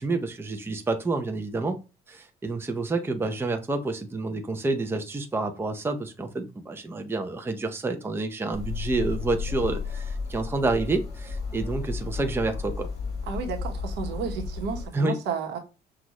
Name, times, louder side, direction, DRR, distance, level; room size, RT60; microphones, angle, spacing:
voice 1, 0.0-1.8 2.1-12.9 14.9-15.2, right 3 dB, 15° right, 0.6 m, -29 dB
sound 1, 8.5-14.9, left 4 dB, 40° left, 2.3 m, -33 dB
voice 2, 13.3-15.6, right 5 dB, 85° right, 1.2 m, -32 dB
6.0 x 2.5 x 3.0 m
cardioid pair, 110°, 17 cm